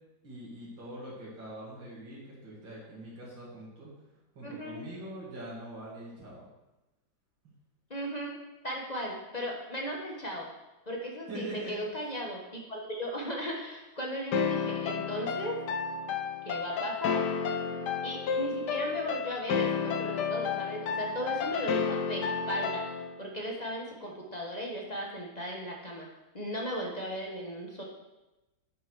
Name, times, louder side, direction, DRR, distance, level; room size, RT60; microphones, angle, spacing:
voice 1, 0.2-4.0 4.3-6.5 11.3-11.8, right 1 dB, 75° right, -6 dB, 3.0 m, -43 dB
voice 2, 4.4-4.8 7.9-8.4 8.6-10.5 10.9-15.6 16.4-17.3 18.0-22.8 23.2-26.1 26.3-27.8, equal, 25° left, -1 dB, 1.3 m, -36 dB
sound 1, 14.3-23.2, left 6 dB, 65° left, 1.2 m, -31 dB
8.1 x 6.2 x 6.3 m, 1.0 s
omnidirectional pair, 2.1 m